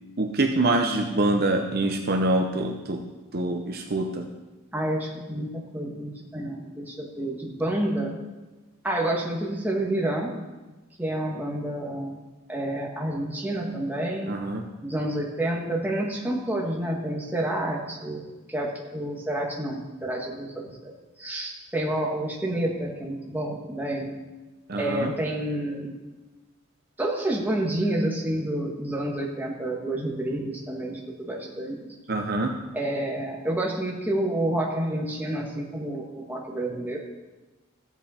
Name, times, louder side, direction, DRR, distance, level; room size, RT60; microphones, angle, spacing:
voice 1, 0.2-3.0 3.3-4.3 14.3-14.6 24.7-25.1 32.1-32.5, right 2 dB, 45° right, 2 dB, 0.8 m, -25 dB
voice 2, 4.7-8.1 8.8-10.3 11.0-12.2 12.5-14.4 14.8-18.2 18.5-20.9 21.2-24.1 24.8-25.9 27.0-31.8 32.7-37.0, right 1 dB, 10° right, -2 dB, 1.6 m, -29 dB
14.5 x 8.2 x 4.3 m, 1.2 s
head